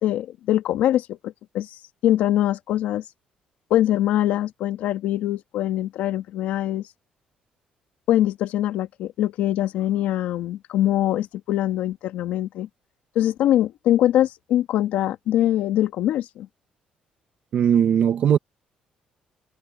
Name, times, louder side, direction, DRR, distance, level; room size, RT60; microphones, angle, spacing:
voice 1, 0.0-1.8 2.0-3.0 3.7-6.9 8.1-12.7 13.2-16.5, left 12 dB, 80° left, 2.2 m, -23 dB
voice 2, 17.5-18.4, right 9 dB, 50° right, 1.1 m, -18 dB
cardioid pair, 160°, 3 cm